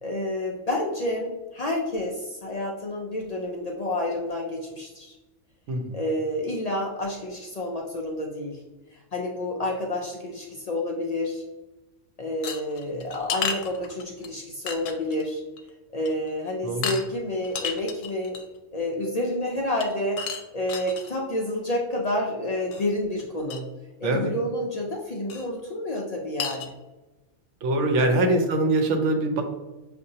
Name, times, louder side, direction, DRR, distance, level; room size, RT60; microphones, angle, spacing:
voice 1, 0.0-5.2 5.9-8.6 8.9-11.4 12.2-15.4 15.9-18.4 18.7-20.2 20.5-23.7 24.0-26.6 28.1-28.2, left 1 dB, 60° left, 0 dB, 0.4 m, -29 dB
voice 2, 5.7-6.0 16.6-16.8 24.0-24.3 27.6-29.4, right 2 dB, 70° right, 5 dB, 1.0 m, -23 dB
sound 1, 12.4-14.3 14.7-15.2 15.6-15.7 16.0-16.3 16.8-17.0 17.4-18.6 19.8-21.1 22.7-22.9 23.2-23.3 23.5-23.6 25.3-25.5 26.0-26.1 26.4-26.7, left 6 dB, 80° left, 0.9 m, -32 dB
6.2 x 2.5 x 2.7 m, 1.1 s
omnidirectional pair, 1.3 m